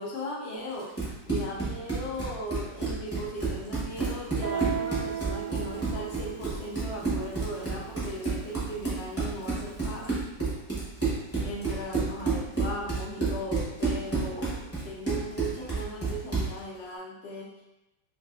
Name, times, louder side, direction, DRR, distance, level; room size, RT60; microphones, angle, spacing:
voice 1, 0.0-10.3 11.4-17.6, equal, 70° left, -4 dB, 0.6 m, -38 dB
Run, 0.8-16.6, right 4 dB, 20° left, 0.4 m, -30 dB
Guitar, 4.4-9.9, right 9 dB, 80° right, 1.3 m, -37 dB
3.6 x 2.4 x 2.4 m, 0.93 s
omnidirectional pair, 2.0 m